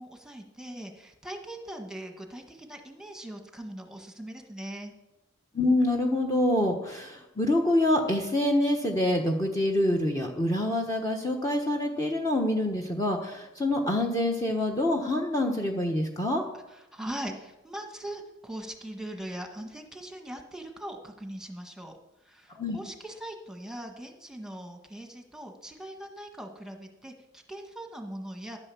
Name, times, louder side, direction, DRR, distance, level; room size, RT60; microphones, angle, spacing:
voice 1, 0.0-4.9 16.7-28.6, right 1 dB, 5° right, 4 dB, 1.5 m, -41 dB
voice 2, 5.5-16.4 22.6-22.8, left 1 dB, 15° left, 2 dB, 1.1 m, -26 dB
11.5 x 9.6 x 7.1 m, 0.97 s
head